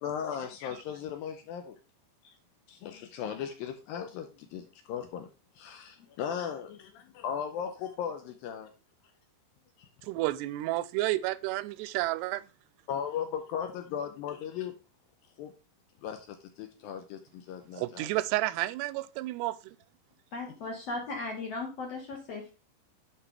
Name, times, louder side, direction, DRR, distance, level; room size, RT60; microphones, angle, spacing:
voice 1, 0.0-1.8 2.2-2.4 2.7-8.7 9.8-9.9 12.0-12.1 12.9-14.8 15.4-15.5 16.0-18.1, left 8 dB, 80° left, 2.2 m, -37 dB
voice 2, 10.0-12.4 17.8-19.8, right 17 dB, 90° right, 2.6 m, -31 dB
voice 3, 20.3-22.5, left 3 dB, 55° left, 1.9 m, -37 dB
11.0 x 4.8 x 3.3 m
omnidirectional pair, 4.7 m